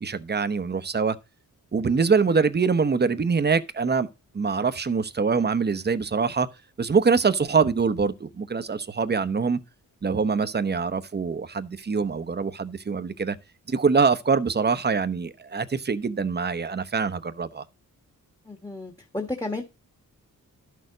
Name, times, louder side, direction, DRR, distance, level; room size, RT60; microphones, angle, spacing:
voice 1, 0.0-1.2 1.7-4.1 4.3-6.5 6.8-9.6 10.0-13.4 13.7-17.6, right 5 dB, 30° right, 0.9 m, -24 dB
voice 2, 18.4-19.6, left 2 dB, 10° left, 1.5 m, -32 dB
12.5 x 6.6 x 4.0 m
wide cardioid pair, 110°, 33 cm